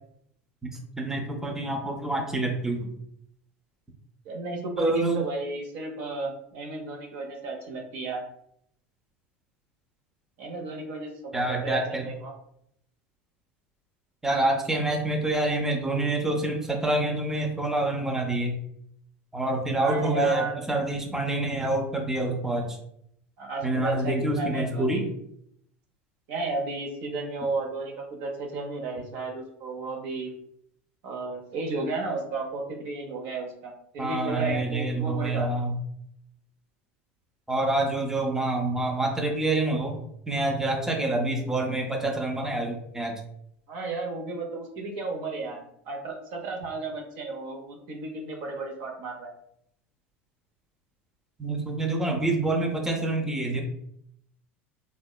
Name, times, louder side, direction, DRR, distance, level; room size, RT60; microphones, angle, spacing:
voice 1, 1.0-2.9 4.8-5.2 11.3-12.0 14.2-18.6 19.3-22.8 23.6-25.0 34.0-35.8 37.5-40.0 40.3-43.2 51.4-53.6, right 2 dB, 5° right, 2 dB, 0.5 m, -27 dB
voice 2, 4.2-8.2 10.4-12.3 19.7-20.6 23.4-25.1 26.3-30.3 31.0-35.5 43.7-49.3, right 3 dB, 60° right, 1 dB, 0.7 m, -33 dB
2.7 x 2.2 x 2.2 m, 0.71 s
hypercardioid pair, 90°, 7 cm